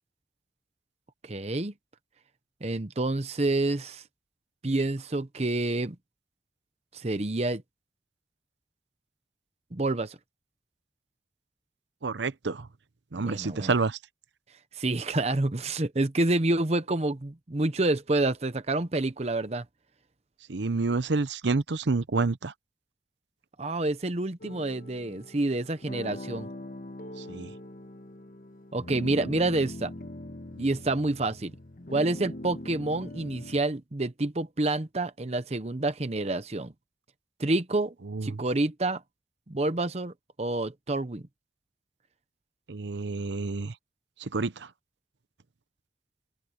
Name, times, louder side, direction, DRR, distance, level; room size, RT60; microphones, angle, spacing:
voice 1, 1.2-1.7 2.6-4.0 4.6-6.0 6.9-7.6 9.7-10.2 13.2-13.7 14.7-19.6 23.6-26.5 28.7-29.9 30.6-31.5 31.9-36.7 37.4-37.9 38.2-39.0 39.5-40.1 40.4-41.3, right 2 dB, 35° right, 0.8 m, -28 dB
voice 2, 12.0-12.7 13.1-14.0 20.5-22.5 27.3-27.5 38.1-38.4 42.7-43.7 44.2-44.7, right 3 dB, 80° right, 0.8 m, -28 dB
sound 1, 24.4-33.6, left 1 dB, 50° left, 1.4 m, -42 dB
open air
head